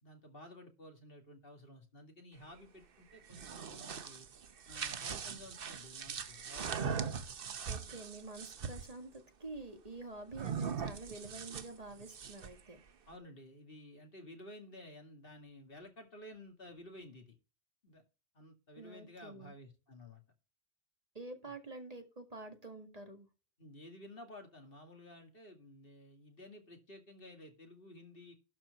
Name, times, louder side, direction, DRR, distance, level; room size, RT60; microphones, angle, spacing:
voice 1, 0.0-4.3 4.7-7.0 13.1-17.4 17.8-18.0 18.3-20.2 23.6-28.4, left 1 dB, 60° left, 4 dB, 2.5 m, -53 dB
sound 1, 3.1-8.9 10.3-12.6, right 6 dB, 60° right, 1.1 m, -41 dB
voice 2, 7.7-12.8 18.8-19.5 21.2-23.3, right 2 dB, 35° right, 4 dB, 1.9 m, -48 dB
12.0 x 4.4 x 6.7 m, 0.30 s
omnidirectional pair, 1.1 m